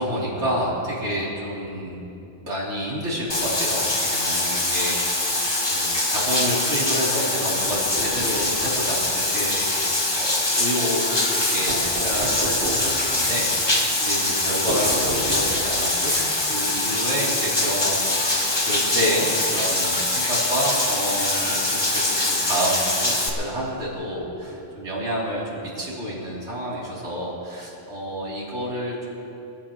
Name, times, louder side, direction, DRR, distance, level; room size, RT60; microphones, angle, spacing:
voice 1, 0.0-2.1 2.4-5.3 5.7-11.0 11.3-16.1 16.4-29.1, equal, 75° right, -6 dB, 3.5 m, -29 dB
Bathtub (filling or washing), 3.3-23.3, left 2 dB, 25° left, 1.1 m, -23 dB
sound 1, 7.7-8.7 11.7-13.0 14.7-15.8, right 2 dB, 50° right, 1.3 m, -32 dB
sound 2, 11.3-11.7 13.0-13.5 14.7-15.2 15.9-16.4 18.0-18.4 19.9-20.0, left 2 dB, 65° left, 2.0 m, -32 dB
22.0 x 15.0 x 3.0 m, 2.7 s
omnidirectional pair, 1.2 m